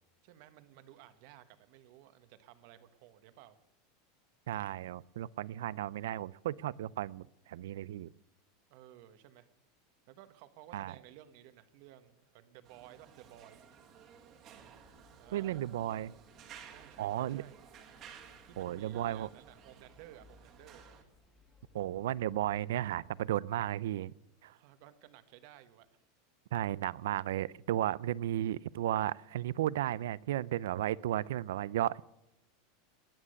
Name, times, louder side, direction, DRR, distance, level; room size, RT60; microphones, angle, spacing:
voice 1, 0.2-3.6 8.7-9.5 10.1-13.6 15.1-15.6 16.7-17.6 18.5-20.8 24.5-25.9, right 13 dB, 45° right, 1.2 m, -56 dB
voice 2, 4.5-8.1 10.7-10.9 15.3-16.1 17.0-17.4 18.6-19.3 21.7-24.1 24.4-24.6 26.5-32.0, right 13 dB, 85° right, 0.5 m, -34 dB
sound 1, 12.6-21.0, right 8 dB, 30° right, 1.8 m, -55 dB
sound 2, 14.5-23.2, left 3 dB, 10° left, 1.9 m, -65 dB
19.5 x 9.9 x 6.6 m
supercardioid pair, 175°, 0 cm